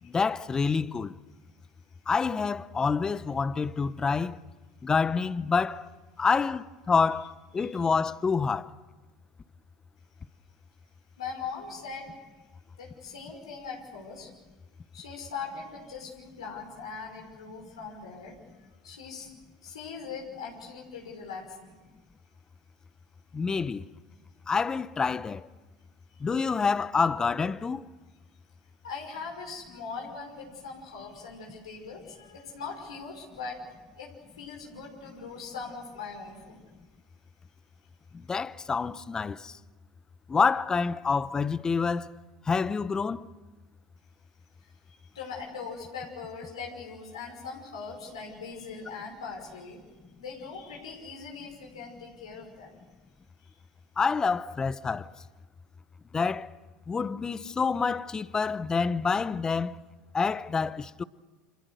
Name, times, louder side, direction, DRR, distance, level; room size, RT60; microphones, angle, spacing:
voice 1, 0.0-1.2 2.1-4.4 4.8-5.9 6.2-8.7 23.3-23.8 24.5-25.5 26.2-27.9 38.1-39.6 40.3-42.1 42.5-43.3 54.0-55.1 56.1-56.5 56.9-59.8 60.1-61.0, left 5 dB, 25° left, 0.9 m, -27 dB
voice 2, 11.2-12.1 12.8-14.3 14.9-18.4 18.8-19.3 19.6-21.8 26.1-26.2 28.8-33.6 34.0-36.6 44.6-49.8 50.2-52.8 53.4-53.5, left 5 dB, 90° left, 5.6 m, -41 dB
29.5 x 26.5 x 6.6 m
hypercardioid pair, 85°, 3 cm